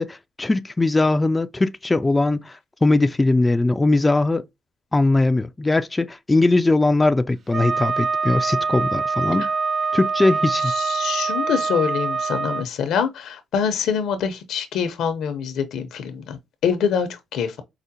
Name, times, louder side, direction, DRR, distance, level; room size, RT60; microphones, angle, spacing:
voice 1, 0.0-4.5 4.9-9.5 9.9-10.7, left 2 dB, 20° left, 0.3 m, -20 dB
Wind instrument woodwind instrument, 7.5-12.7, right 4 dB, 50° right, 0.5 m, -24 dB
voice 2, 10.8-17.6, left 7 dB, 80° left, 0.7 m, -25 dB
4.8 x 2.1 x 2.7 m
cardioid pair, 90°, 0 cm